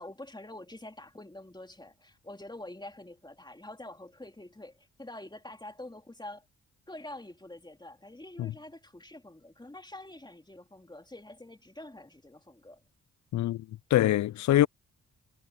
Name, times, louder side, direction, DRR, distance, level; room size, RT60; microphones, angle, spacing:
voice 1, 0.0-6.5 6.9-12.8, left 1 dB, 15° left, 3.0 m, -46 dB
voice 2, 13.3-13.6 13.9-14.7, left 13 dB, 65° left, 0.5 m, -24 dB
supercardioid pair, 50°, 31 cm